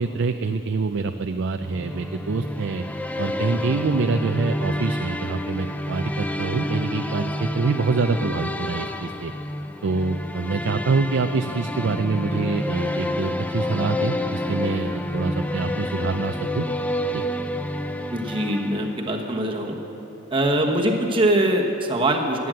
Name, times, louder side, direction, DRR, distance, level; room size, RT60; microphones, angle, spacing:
voice 1, 0.0-2.8 3.2-9.3 9.8-16.7 17.1-17.3, right 4 dB, 60° right, 7 dB, 0.5 m, -25 dB
sound 1, 1.6-19.3, left 1 dB, 5° left, 0.4 m, -29 dB
voice 2, 18.1-19.8 20.3-22.5, right 1 dB, 25° right, 1 dB, 1.2 m, -22 dB
15.0 x 9.4 x 7.6 m, 2.9 s
head